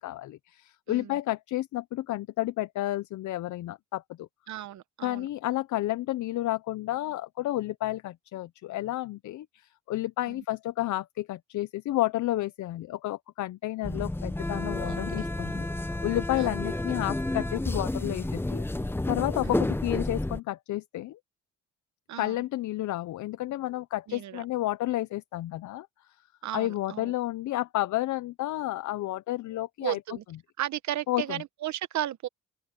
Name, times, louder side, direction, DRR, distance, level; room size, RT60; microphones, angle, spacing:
voice 1, 0.0-4.3 5.0-18.6 19.1-21.2 22.2-25.9 26.5-30.0 31.1-31.4, left 15 dB, 75° left, 0.7 m, -31 dB
voice 2, 0.9-1.2 4.5-5.3 10.3-10.4 14.8-15.3 16.3-16.5 19.4-19.6 22.1-22.4 24.1-24.4 26.4-27.1 29.8-30.2 30.6-32.3, right 12 dB, 70° right, 1.0 m, -35 dB
sound 1, 13.8-20.4, left 1 dB, 10° left, 0.9 m, -31 dB
open air
cardioid pair, 90°, 30 cm